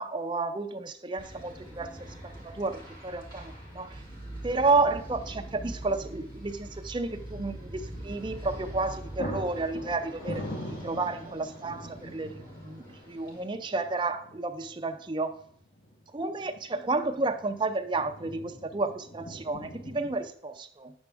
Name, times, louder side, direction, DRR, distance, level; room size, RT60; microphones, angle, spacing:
voice 1, 0.0-3.9 4.4-12.3 12.6-15.3 16.1-20.9, right 3 dB, 25° right, 0.6 m, -31 dB
sound 1, 1.2-13.4, right 1 dB, 25° left, 2.4 m, -44 dB
sound 2, 4.0-4.3 4.6-4.7 8.4-8.6 8.9-20.2, equal, 55° left, 1.4 m, -43 dB
9.4 x 7.2 x 3.4 m
head